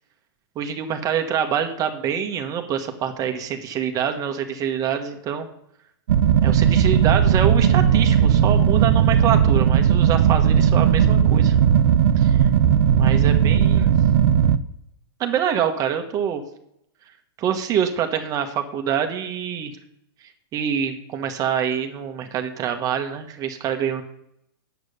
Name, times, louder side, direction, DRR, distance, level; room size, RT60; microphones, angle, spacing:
voice 1, 0.5-5.5 6.4-11.6 12.2-12.5 12.9-13.9 15.2-16.4 17.4-19.7 20.5-24.0, right 8 dB, 25° right, 6 dB, 1.3 m, -25 dB
sound 1, 6.1-14.6, right 8 dB, 75° right, 0.8 m, -17 dB
9.4 x 8.1 x 6.7 m, 0.76 s
hypercardioid pair, 140°, 13 cm